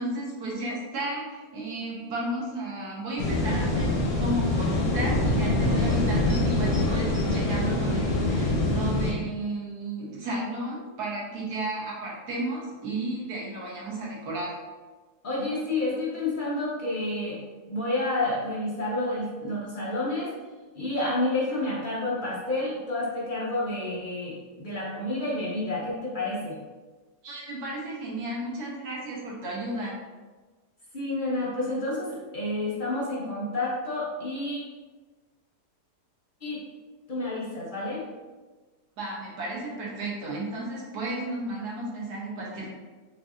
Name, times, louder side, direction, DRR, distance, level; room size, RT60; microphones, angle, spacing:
voice 1, 0.0-14.5 27.2-30.0 39.0-42.7, right 2 dB, 75° right, -4 dB, 1.5 m, -33 dB
sound 1, 3.2-9.1, left 2 dB, 80° left, 1.4 m, -25 dB
voice 2, 15.2-17.4 17.7-20.3 20.7-26.6 30.9-34.6 36.4-36.6 37.1-38.1, left 2 dB, 60° left, -6 dB, 0.5 m, -29 dB
5.3 x 2.6 x 2.4 m, 1.3 s
omnidirectional pair, 1.7 m